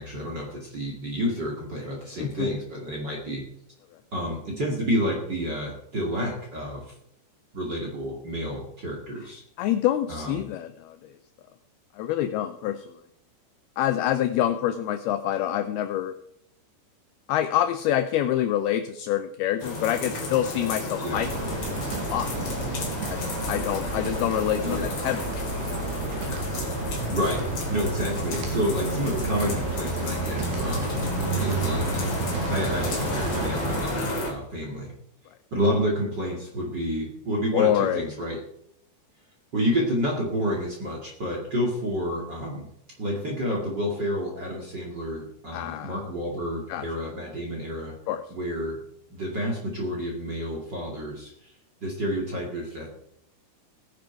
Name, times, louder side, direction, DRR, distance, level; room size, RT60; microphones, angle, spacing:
voice 1, 0.0-3.5 4.1-6.8 7.5-9.4 10.1-10.4 21.0-21.2 24.6-24.9 27.1-31.0 31.3-32.1 32.4-34.9 35.5-38.4 39.5-42.7 43.0-47.9 48.3-48.8 49.1-51.5 51.8-52.9, equal, 35° right, -1 dB, 2.0 m, -29 dB
voice 2, 9.6-11.1 12.0-13.0 13.8-16.1 17.3-21.3 22.1-22.4 23.1-25.2 37.5-38.1 45.5-46.0 46.7-46.9 48.1-48.2, left 11 dB, 90° left, 9 dB, 2.2 m, -26 dB
sound 1, 19.6-34.3, left 2 dB, 40° left, 3.6 m, -32 dB
sound 2, 21.1-33.8, right 3 dB, 70° right, 4.3 m, -31 dB
16.5 x 10.5 x 4.5 m, 0.73 s
omnidirectional pair, 5.2 m